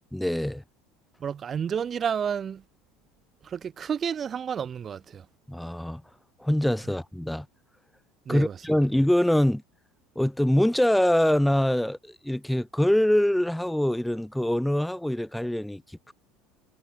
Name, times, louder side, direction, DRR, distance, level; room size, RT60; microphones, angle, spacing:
voice 1, 0.1-0.6 5.5-6.0 6.4-7.5 8.3-9.6 10.2-15.8 16.1-16.2, left 1 dB, ahead, 0.7 m, -24 dB
voice 2, 1.2-2.6 3.4-5.2 8.3-8.6, right 7 dB, 30° right, 1.1 m, -30 dB
cardioid pair, 140°, 0 cm